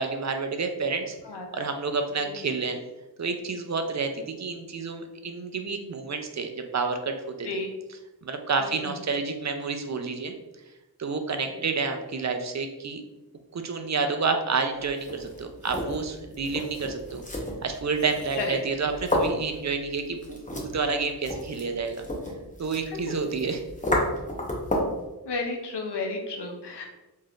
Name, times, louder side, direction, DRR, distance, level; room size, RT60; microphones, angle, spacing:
voice 1, 0.0-1.2 1.5-2.8 3.2-7.5 8.2-10.3 11.0-13.0 13.5-17.2 17.6-22.1 22.6-23.6, right 4 dB, 45° right, 6 dB, 0.4 m, -29 dB
voice 2, 1.2-1.6 2.2-2.5 7.4-7.7 8.6-9.0 18.4-18.6 25.3-26.8, left 3 dB, 80° left, 1 dB, 0.6 m, -33 dB
sound 1, 14.8-25.0, left 1 dB, 20° left, 0.7 m, -32 dB
3.3 x 2.6 x 2.3 m, 1.0 s
cardioid pair, 40°, 40 cm